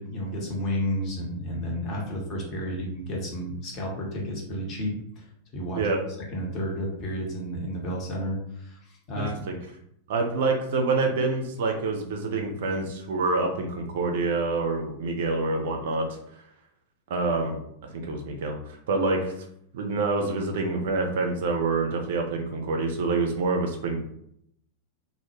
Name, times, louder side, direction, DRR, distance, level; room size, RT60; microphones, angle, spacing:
voice 1, 0.0-5.3 5.5-5.8 6.3-9.5, equal, 35° left, -2 dB, 0.8 m, -31 dB
voice 2, 9.2-9.6 10.1-16.0 17.1-17.6 17.9-18.6 18.9-19.3 19.7-24.0, right 3 dB, 55° right, 3 dB, 0.4 m, -26 dB
2.1 x 2.0 x 3.0 m, 0.73 s
figure-of-eight pair, 90°, 0 cm